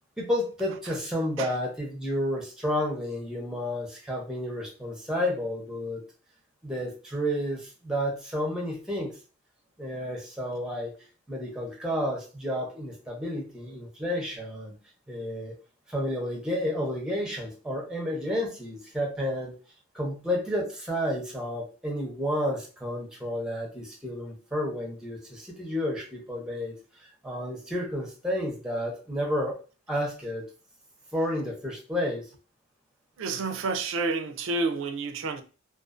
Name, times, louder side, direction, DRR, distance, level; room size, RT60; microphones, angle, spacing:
voice 1, 0.2-6.0 6.6-9.1 9.8-10.9 11.3-14.7 15.1-15.5 15.9-19.6 19.9-26.8 27.2-29.6 29.9-30.5 31.1-32.3, equal, 5° right, 0.7 m, -31 dB
voice 2, 33.2-35.4, right 3 dB, 70° right, 0.4 m, -29 dB
2.4 x 2.4 x 2.4 m
head